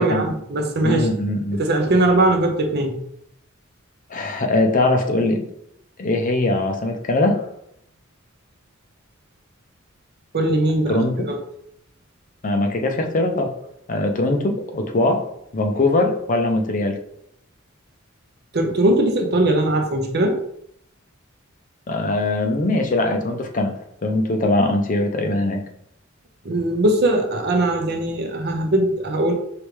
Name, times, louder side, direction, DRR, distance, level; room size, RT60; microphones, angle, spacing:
voice 1, 0.0-1.1 1.6-3.0 10.3-11.4 18.5-20.4 26.4-29.3, right 1 dB, 50° right, 4 dB, 0.7 m, -20 dB
voice 2, 0.8-1.6 4.1-5.4 6.0-7.4 10.9-11.2 12.4-13.5 13.9-15.2 15.5-17.0 21.9-23.7 24.0-25.6, left 2 dB, 40° left, 4 dB, 0.6 m, -21 dB
4.9 x 3.1 x 3.2 m, 0.73 s
head